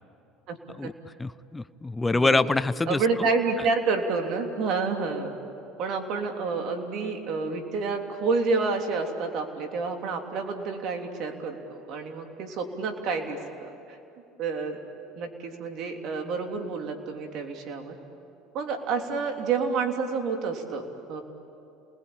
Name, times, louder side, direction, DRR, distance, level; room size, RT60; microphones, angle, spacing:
voice 1, 1.2-3.3, left 3 dB, 15° left, 16 dB, 0.7 m, -25 dB
voice 2, 2.1-2.5 2.9-5.3 5.8-14.0 14.4-14.8 15.1-17.9 18.5-21.2, right 4 dB, 60° right, 4 dB, 3.2 m, -29 dB
29.5 x 20.5 x 8.8 m, 2.7 s
hypercardioid pair, 85°, 0 cm